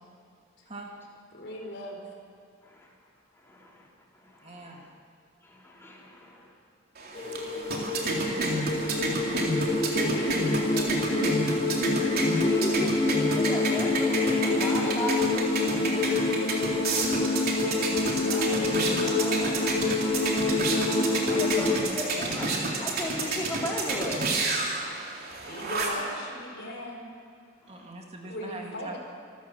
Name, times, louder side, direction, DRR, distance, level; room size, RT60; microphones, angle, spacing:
voice 1, 1.3-2.0 9.9-11.4 18.0-18.1 18.4-19.6 21.2-22.5 25.4-27.1 28.2-29.0, left 1 dB, 60° left, 0 dB, 4.6 m, -39 dB
voice 2, 3.4-3.9 4.2-4.9 5.4-6.5 12.0-15.9 17.5-18.7 21.0-24.3 27.6-27.9, left 1 dB, 10° left, -4 dB, 4.3 m, -37 dB
voice 3, 4.4-4.9 15.7-16.8 27.7-29.0, right 2 dB, 30° right, 0 dB, 2.3 m, -43 dB
sound 1, 7.0-26.1, right 2 dB, 50° right, 3.5 m, -30 dB
sound 2, 7.1-21.8, left 3 dB, 30° left, 2.2 m, -27 dB
26.5 x 14.0 x 7.8 m, 2.4 s
head